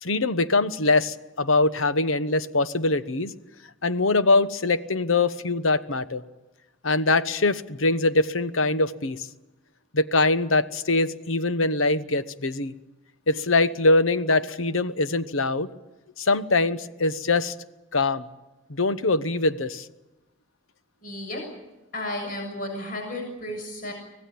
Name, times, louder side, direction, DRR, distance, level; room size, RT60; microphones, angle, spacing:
voice 1, 0.0-3.3 3.8-6.2 6.8-9.3 9.9-12.7 13.3-15.7 16.2-17.5 17.9-18.2 18.7-19.9, left 3 dB, 75° left, 13 dB, 1.1 m, -23 dB
voice 2, 21.0-21.4 21.9-23.9, left 1 dB, 40° left, 2 dB, 6.9 m, -33 dB
25.0 x 18.0 x 8.7 m, 1.1 s
head